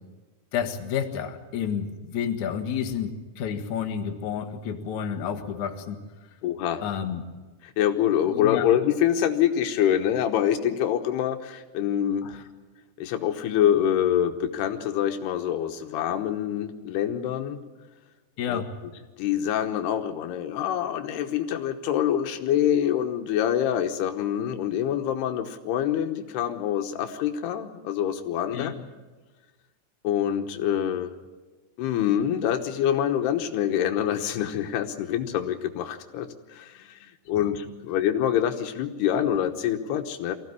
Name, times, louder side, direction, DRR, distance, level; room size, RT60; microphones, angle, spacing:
voice 1, 0.5-6.0 6.8-7.2 8.3-8.7 12.2-12.4 18.4-18.7 28.5-28.7 37.3-37.5, left 8 dB, 60° left, 4 dB, 2.5 m, -30 dB
voice 2, 6.4-6.8 7.6-12.4 13.0-17.6 18.5-18.6 19.2-28.8 30.0-31.1 31.8-40.3, left 10 dB, 80° left, 6 dB, 3.1 m, -25 dB
24.0 x 16.0 x 9.7 m, 1.3 s
omnidirectional pair, 4.6 m